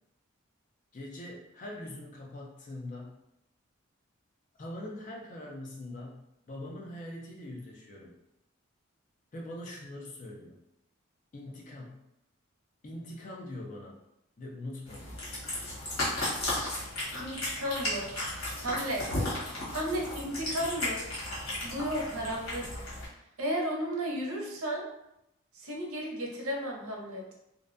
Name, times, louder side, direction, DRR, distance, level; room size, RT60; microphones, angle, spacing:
voice 1, 0.9-3.2 4.6-8.2 9.3-10.6 11.3-12.0 12.8-14.0 14.4-15.2, left 1 dB, 35° left, -1 dB, 0.4 m, -42 dB
Cat, 14.9-23.0, left 1 dB, 70° left, 1.1 m, -35 dB
voice 2, 17.2-18.1 18.6-19.0 19.7-21.0 21.6-22.8 23.4-24.8 25.5-27.3, equal, 80° right, -1 dB, 0.6 m, -33 dB
2.5 x 2.1 x 2.5 m, 0.83 s
head